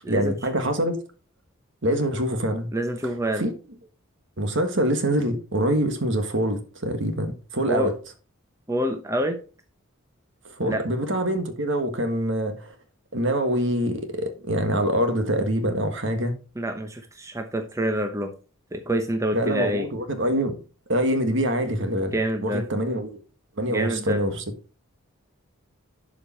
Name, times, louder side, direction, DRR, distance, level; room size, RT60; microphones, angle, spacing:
voice 1, 0.1-1.0 1.8-2.7 3.3-3.5 4.4-7.9 10.4-12.7 13.1-16.3 19.3-20.5 20.9-22.1 22.4-23.2 23.6-24.4, right 1 dB, 60° right, 1.6 m, -25 dB
voice 2, 2.7-3.4 7.7-7.9 8.7-9.4 10.7-10.8 16.6-18.3 18.7-19.9 22.1-22.6 23.7-24.2, right 1 dB, 15° right, 0.8 m, -26 dB
11.5 x 5.1 x 4.3 m
head